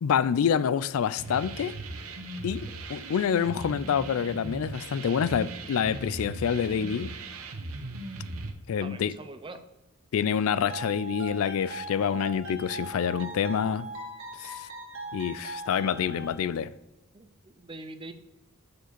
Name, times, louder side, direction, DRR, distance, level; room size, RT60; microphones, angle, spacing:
voice 1, 0.0-1.7 2.4-7.1 8.7-9.1 10.1-13.9 14.4-14.7 15.1-16.7, left 7 dB, 70° left, 0.3 m, -27 dB
sound 1, 1.2-8.5, right 2 dB, 80° right, 1.0 m, -38 dB
voice 2, 8.8-9.6 17.1-18.1, right 2 dB, 20° right, 0.5 m, -43 dB
sound 2, 10.5-16.4, right 2 dB, 60° right, 2.0 m, -40 dB
6.4 x 5.0 x 6.7 m
head